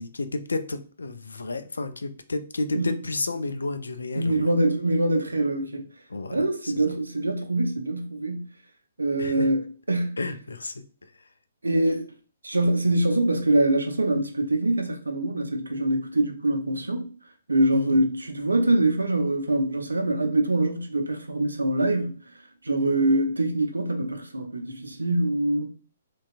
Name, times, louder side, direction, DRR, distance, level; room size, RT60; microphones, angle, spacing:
voice 1, 0.0-4.5 6.1-7.0 9.2-9.5 10.2-10.8 17.7-18.0 22.8-23.0, left 2 dB, 75° left, 0.3 m, -32 dB
voice 2, 4.2-5.9 6.3-8.5 9.0-10.2 11.6-12.1 12.4-17.1 17.5-22.2 22.6-25.7, right 1 dB, 80° right, 0.5 m, -24 dB
2.7 x 2.2 x 2.4 m
figure-of-eight pair, 125°, 0 cm